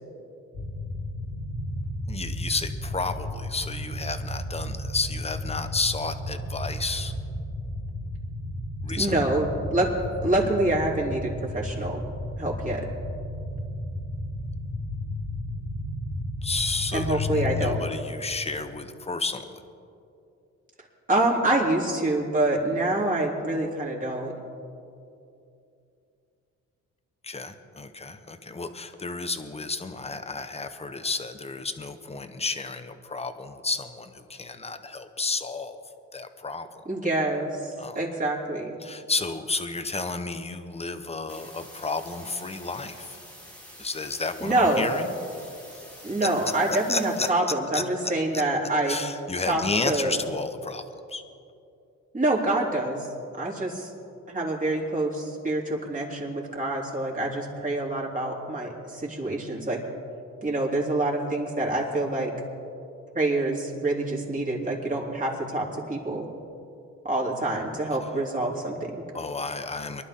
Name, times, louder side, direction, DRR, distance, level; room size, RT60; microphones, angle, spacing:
sound 1, 0.5-17.8, left 1 dB, 70° left, 2.3 m, -33 dB
voice 1, 2.1-7.1 8.8-9.2 16.4-19.6 27.2-35.8 36.1-36.8 37.8-38.0 38.8-43.2 43.8-45.1 45.4-45.8 46.7-47.3 47.7-47.8 48.3-48.4 48.9-50.8 51.1-51.2 69.1-70.0, left 3 dB, 20° left, 8 dB, 1.1 m, -32 dB
voice 2, 9.0-9.9 10.2-12.0 12.4-12.9 16.9-17.8 21.1-24.3 36.9-38.8 44.4-44.9 46.0-49.0 49.4-50.2 52.1-53.1 53.4-53.9 54.3-59.8 60.4-62.3 63.1-66.3 67.0-69.0, right 2 dB, 25° right, -3 dB, 3.4 m, -26 dB
sound 2, 41.3-47.3, equal, 5° left, 2.5 m, -47 dB
24.0 x 11.5 x 3.8 m, 2.6 s
cardioid pair, 90°, 30 cm